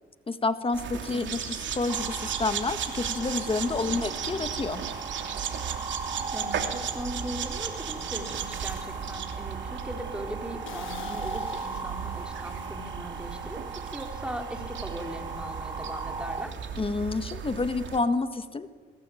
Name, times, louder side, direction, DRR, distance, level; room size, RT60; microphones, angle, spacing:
voice 1, 0.3-4.8 16.8-18.7, left 3 dB, 30° left, 10 dB, 1.7 m, -29 dB
sound 1, 0.7-18.0, right 8 dB, 70° right, 3.0 m, -36 dB
sound 2, 1.9-16.4, right 4 dB, 20° right, 1.1 m, -39 dB
voice 2, 6.3-13.6 13.9-16.5, equal, 5° right, 4 dB, 4.1 m, -39 dB
sound 3, 10.7-13.2 13.5-13.7, left 10 dB, 75° left, 1.5 m, -48 dB
25.0 x 21.5 x 8.6 m, 1.4 s
cardioid pair, 90°, 20 cm